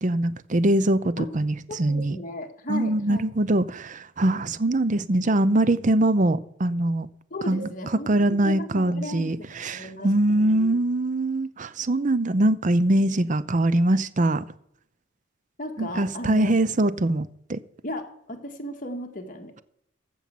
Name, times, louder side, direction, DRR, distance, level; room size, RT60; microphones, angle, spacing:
voice 1, 0.0-2.2 2.7-7.1 7.5-7.7 8.1-14.4 15.8-17.6, right 1 dB, 40° right, 0.6 m, -23 dB
voice 2, 1.7-3.2 7.3-10.8 15.6-16.5 17.8-19.5, left 1 dB, 45° left, 1.8 m, -36 dB
14.5 x 5.6 x 7.6 m
head